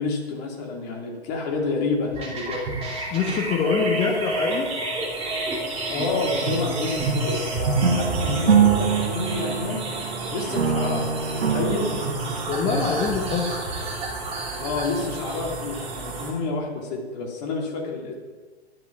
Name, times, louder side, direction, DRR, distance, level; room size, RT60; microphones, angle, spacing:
voice 1, 0.0-2.6 5.9-9.8 10.3-11.9 14.6-18.1, left 3 dB, 35° left, 1 dB, 2.7 m, -29 dB
sound 1, 1.9-16.3, right 3 dB, 35° right, 4.4 m, -36 dB
sound 2, 2.1-16.2, right 2 dB, 15° right, 2.8 m, -30 dB
voice 2, 3.1-4.7 12.5-13.6, left 5 dB, 15° left, 0 dB, 1.1 m, -24 dB
sound 3, 7.8-10.2 10.5-12.8, right 6 dB, 70° right, 1.6 m, -23 dB
11.0 x 10.5 x 5.9 m, 1.4 s
figure-of-eight pair, 115°, 33 cm